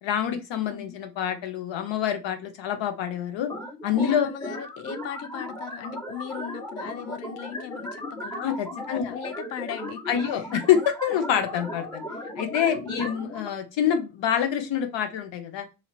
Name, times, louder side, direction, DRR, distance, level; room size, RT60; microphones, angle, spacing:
voice 1, 0.0-3.5 3.8-4.3 8.3-9.1 10.1-12.0 12.4-15.7, left 9 dB, 60° left, 0.9 m, -26 dB
sound 1, 3.5-13.5, equal, 5° left, 1.0 m, -36 dB
voice 2, 4.0-8.4 8.9-10.5 12.9-13.1, left 10 dB, 35° left, 0.4 m, -38 dB
2.9 x 2.8 x 3.8 m
hypercardioid pair, 45°, 50 cm